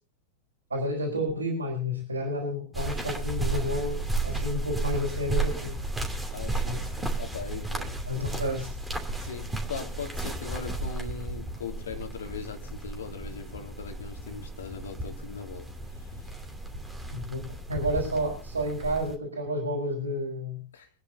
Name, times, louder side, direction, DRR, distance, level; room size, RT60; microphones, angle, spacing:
voice 1, 0.7-5.8 6.7-6.8 8.1-8.7 9.2-9.3 17.1-20.6, equal, 80° right, 4.6 m, -30 dB
sound 1, 2.7-19.2, right 2 dB, 10° right, 2.7 m, -33 dB
voice 2, 6.3-8.5 9.2-16.5 20.7-20.9, left 6 dB, 65° left, 2.4 m, -40 dB
26.0 x 9.8 x 2.7 m
figure-of-eight pair, 90°, 0 cm